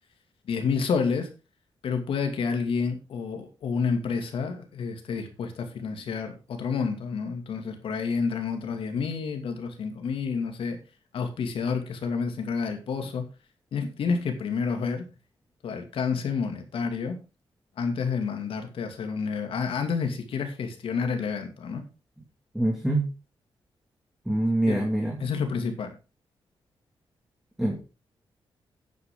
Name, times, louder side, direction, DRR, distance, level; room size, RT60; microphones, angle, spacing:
voice 1, 0.4-1.3 1.8-10.8 11.1-13.2 13.7-15.1 15.6-17.2 17.8-21.8 24.7-24.8 25.2-26.0, left 5 dB, 80° left, 6 dB, 2.5 m, -29 dB
voice 2, 22.5-23.1 24.3-25.1 27.6-27.8, right 1 dB, 5° right, -1 dB, 2.3 m, -24 dB
9.8 x 9.4 x 3.8 m, 0.31 s
wide cardioid pair, 155°, 9 cm